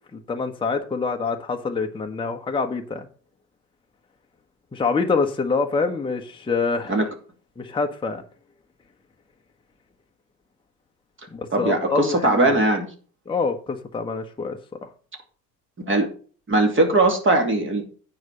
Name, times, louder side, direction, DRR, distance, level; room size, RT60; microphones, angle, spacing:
voice 1, 0.1-3.1 4.7-7.1 7.6-8.2 11.3-12.5 13.3-14.9, left 4 dB, 10° left, 1.1 m, -26 dB
voice 2, 11.5-12.8 15.8-16.1 16.5-17.9, right 2 dB, 25° right, 2.9 m, -20 dB
9.4 x 5.2 x 6.6 m
hypercardioid pair, 75°, 50 cm